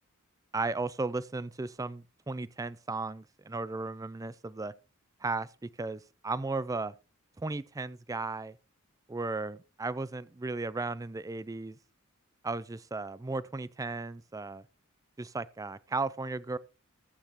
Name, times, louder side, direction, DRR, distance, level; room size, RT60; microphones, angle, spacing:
voice 1, 0.5-4.7 5.2-6.9 7.4-8.6 9.1-11.8 12.4-14.6 15.2-16.6, right 3 dB, 15° right, 0.4 m, -35 dB
15.0 x 8.7 x 3.0 m
head